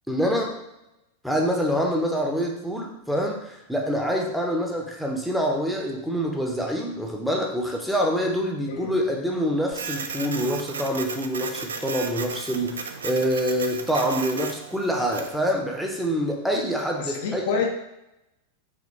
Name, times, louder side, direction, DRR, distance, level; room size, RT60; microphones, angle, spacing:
voice 1, 0.1-0.6 1.2-17.4, equal, ahead, 0 dB, 0.8 m, -26 dB
Printer, 9.7-15.4, right 5 dB, 70° right, 0.4 m, -34 dB
voice 2, 17.0-17.7, left 5 dB, 55° left, 2 dB, 0.6 m, -27 dB
5.0 x 3.2 x 3.1 m, 0.88 s
figure-of-eight pair, 90°, 0 cm